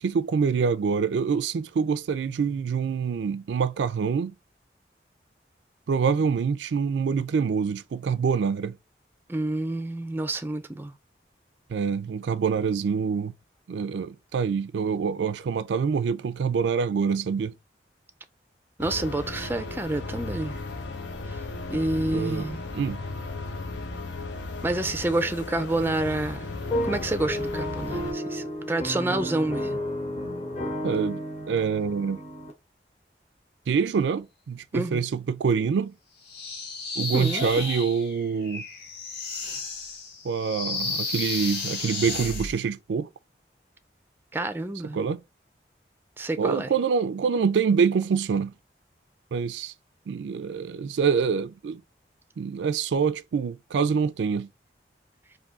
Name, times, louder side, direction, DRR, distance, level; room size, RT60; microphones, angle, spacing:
voice 1, 0.0-4.3 5.9-8.8 11.7-13.3 13.7-17.5 22.1-22.5 22.7-23.0 30.8-32.2 33.7-35.9 37.0-38.6 40.2-43.1 44.9-45.2 46.4-48.5 49.3-49.7 50.1-51.8 52.4-54.5, right 6 dB, 85° right, 0.4 m, -26 dB
voice 2, 9.3-10.9 18.8-20.5 21.7-22.6 24.6-26.5 26.8-29.8 34.7-35.0 37.1-37.6 44.3-45.0 46.2-46.7, right 2 dB, 10° right, 0.3 m, -28 dB
sound 1, 18.8-28.1, left 3 dB, 90° left, 0.8 m, -35 dB
sound 2, 26.6-32.5, left 1 dB, 35° left, 1.0 m, -32 dB
sound 3, 36.3-42.6, left 3 dB, 60° left, 2.1 m, -33 dB
3.6 x 2.7 x 3.8 m
head